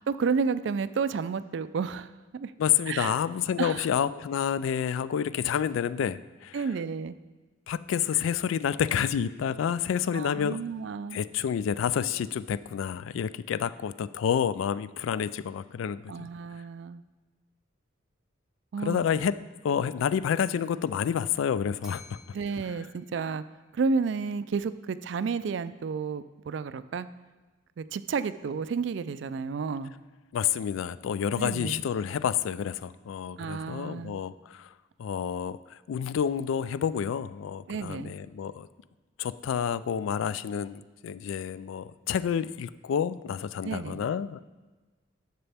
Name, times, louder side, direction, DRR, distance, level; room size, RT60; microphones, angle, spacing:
voice 1, 0.0-2.5 2.9-3.2 3.6-3.9 6.5-7.2 10.1-11.2 16.1-17.0 18.7-19.0 22.3-23.4 23.7-27.1 27.8-29.9 31.4-31.8 33.4-34.2 37.7-38.1 43.6-44.0, right 5 dB, 60° right, 14 dB, 0.3 m, -31 dB
voice 2, 2.6-6.6 7.7-10.6 11.1-16.3 18.8-19.4 19.6-22.2 30.3-34.7 35.0-38.7 39.2-44.4, left 8 dB, 80° left, 16 dB, 0.3 m, -29 dB
Bell, 21.8-24.0, left 3 dB, ahead, 0.9 m, -54 dB
11.0 x 6.7 x 3.4 m, 1.2 s
head